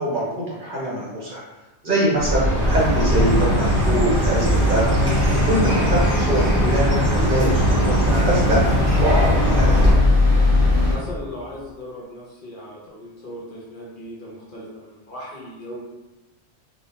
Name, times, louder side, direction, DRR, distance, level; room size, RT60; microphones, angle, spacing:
voice 1, 0.0-1.4 1.8-4.9 5.5-8.6 9.0-9.7, right 1 dB, 55° right, -5 dB, 0.6 m, -23 dB
Chirp tweet, 2.1-9.9, right 1 dB, 20° right, 0.9 m, -20 dB
sound 1, 3.1-10.9, left 3 dB, 20° left, 0.9 m, -22 dB
voice 2, 10.9-15.8, left 1 dB, 55° left, -5 dB, 0.7 m, -37 dB
2.2 x 2.1 x 2.8 m, 1.1 s
omnidirectional pair, 1.2 m